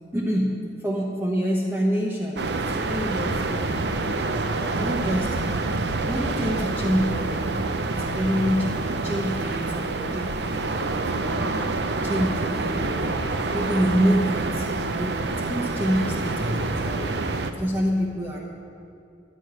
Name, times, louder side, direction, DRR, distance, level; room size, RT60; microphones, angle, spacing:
voice 1, 0.1-5.4 6.0-11.6 12.0-13.2 13.5-17.2 17.5-18.4, equal, 10° right, -5 dB, 1.0 m, -27 dB
sound 1, 2.4-17.5, right 3 dB, 65° right, 0.6 m, -27 dB
10.5 x 6.3 x 9.0 m, 2.5 s
head